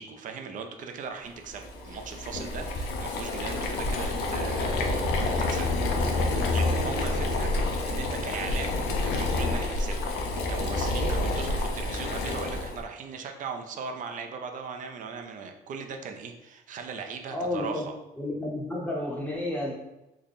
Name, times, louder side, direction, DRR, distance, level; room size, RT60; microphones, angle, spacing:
voice 1, 0.0-5.7 6.1-10.1 10.5-17.9, right 5 dB, 50° right, 4 dB, 0.5 m, -39 dB
Boiling, 1.5-12.8, left 2 dB, 85° left, 0.6 m, -28 dB
voice 2, 17.3-17.9 18.2-19.7, left 1 dB, 10° left, -4 dB, 0.7 m, -31 dB
3.4 x 2.2 x 4.0 m, 0.95 s
cardioid pair, 110°, 17 cm